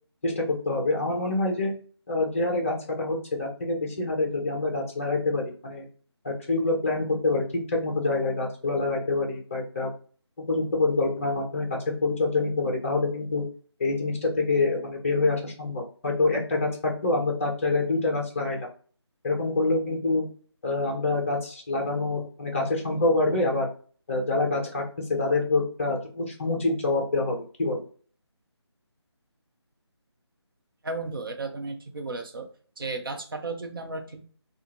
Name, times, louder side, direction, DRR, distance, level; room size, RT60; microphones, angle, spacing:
voice 1, 0.2-1.7 2.1-5.8 6.2-7.5 7.7-9.9 10.5-13.4 13.8-18.7 19.2-20.3 20.6-23.7 24.1-24.8 25.2-27.9, left 3 dB, 30° left, 1 dB, 0.7 m, -26 dB
voice 2, 30.8-32.5 32.8-34.2, right 3 dB, 50° right, 4 dB, 0.6 m, -34 dB
2.5 x 2.4 x 2.9 m, 0.42 s
figure-of-eight pair, 155°, 15 cm